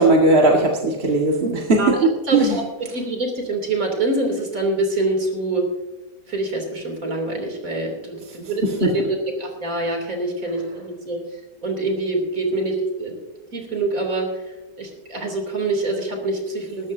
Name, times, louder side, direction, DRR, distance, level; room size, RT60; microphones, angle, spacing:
voice 1, 0.0-2.6 8.8-8.9, right 2 dB, 35° right, -1 dB, 1.9 m, -17 dB
voice 2, 2.3-2.6 2.9-5.7 6.3-11.2 11.6-13.1 13.5-16.9, right 2 dB, 50° right, 3 dB, 3.5 m, -25 dB
20.0 x 13.5 x 2.7 m, 1.1 s
omnidirectional pair, 1.8 m